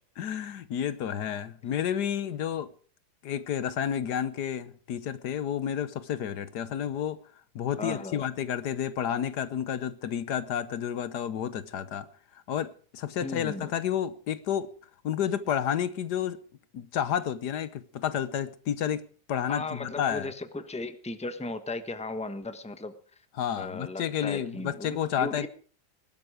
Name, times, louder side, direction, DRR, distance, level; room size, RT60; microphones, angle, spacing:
voice 1, 0.2-2.7 3.2-7.2 7.5-12.1 12.5-14.7 15.0-16.4 16.7-20.3 23.4-25.5, left 9 dB, 80° left, 1.5 m, -30 dB
voice 2, 7.8-8.3 13.2-13.7 19.5-22.9 23.6-25.5, left 2 dB, 5° left, 1.1 m, -36 dB
20.5 x 12.5 x 5.0 m
omnidirectional pair, 1.8 m